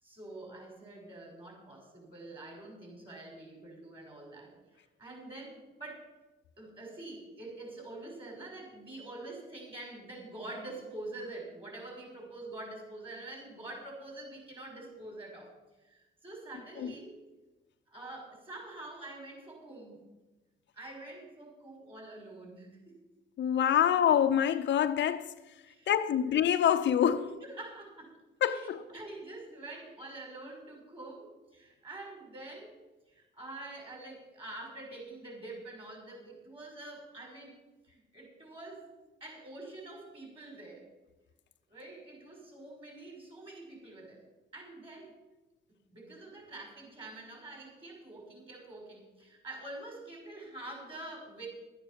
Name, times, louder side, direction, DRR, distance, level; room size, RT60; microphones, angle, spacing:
voice 1, 0.0-6.1 6.6-15.5 15.8-17.2 17.9-20.0 20.7-23.0 25.7-26.3 27.2-28.2 28.5-32.8 33.1-38.9 39.2-40.8 41.7-44.2 44.5-45.1 45.9-51.5, right 2 dB, 25° right, 5.7 m, -46 dB
voice 2, 23.4-25.3 25.9-27.3 28.4-28.8, left 9 dB, 65° left, 0.7 m, -26 dB
12.0 x 9.1 x 6.9 m
cardioid pair, 90°, 20 cm